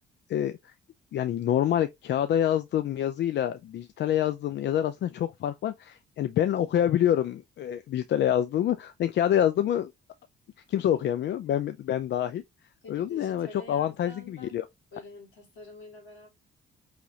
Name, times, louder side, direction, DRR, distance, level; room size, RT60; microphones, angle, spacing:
voice 1, 0.3-0.7 1.1-9.9 10.7-12.4 12.9-14.6, left 10 dB, 60° left, 0.4 m, -27 dB
voice 2, 12.8-14.5 14.9-16.3, left 2 dB, 80° left, 2.4 m, -47 dB
5.0 x 3.0 x 2.7 m
cardioid pair, 90°, 20 cm